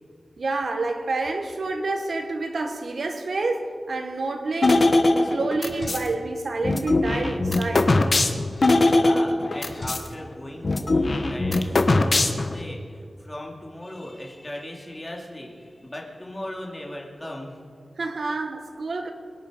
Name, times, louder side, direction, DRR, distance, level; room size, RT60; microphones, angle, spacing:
voice 1, 0.4-4.9 5.3-8.0 18.0-19.1, right 3 dB, 60° right, 1.5 m, -28 dB
sound 1, 4.6-6.1 6.6-10.1 10.3-10.4 10.6-12.6, left 2 dB, 45° left, 1.1 m, -21 dB
voice 2, 8.8-17.7, left 1 dB, 15° left, 2.7 m, -38 dB
23.0 x 10.5 x 5.2 m
wide cardioid pair, 130°, 0 cm